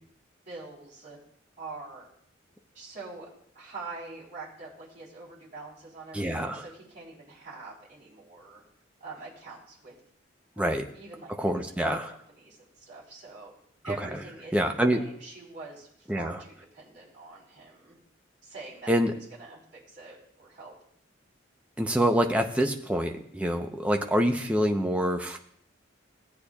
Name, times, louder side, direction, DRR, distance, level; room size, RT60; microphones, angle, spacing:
voice 1, 0.5-1.2 1.6-2.1 2.7-3.3 3.5-8.6 9.0-10.0 10.5-13.5 13.8-15.9 16.2-17.9 18.4-18.9 19.3-20.7, right 3 dB, 40° right, -7 dB, 3.7 m, -44 dB
voice 2, 6.1-6.6 10.6-10.8 11.4-12.1 13.8-13.9 14.5-15.0 16.1-16.4 18.9-19.1 21.8-25.4, equal, 5° right, 3 dB, 0.7 m, -26 dB
16.5 x 8.4 x 2.4 m, 0.67 s
head